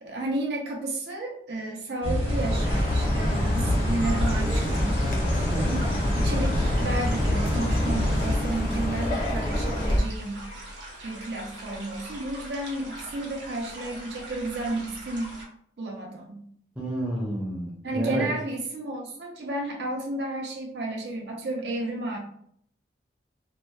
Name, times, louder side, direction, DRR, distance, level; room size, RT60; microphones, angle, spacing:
voice 1, 0.0-5.0 6.0-10.5 11.0-15.4 15.8-16.4 17.8-22.2, right 2 dB, 65° right, 0 dB, 0.6 m, -32 dB
sound 1, 2.0-8.4, left 1 dB, 30° right, 0.8 m, -27 dB
Chirp tweet, 2.2-10.0, equal, 50° left, 0.5 m, -28 dB
sound 2, 4.0-15.5, right 1 dB, 85° right, 0.8 m, -42 dB
voice 2, 5.5-5.9 16.8-18.3, right 1 dB, 5° right, -5 dB, 0.5 m, -30 dB
2.7 x 2.0 x 2.3 m, 0.64 s
head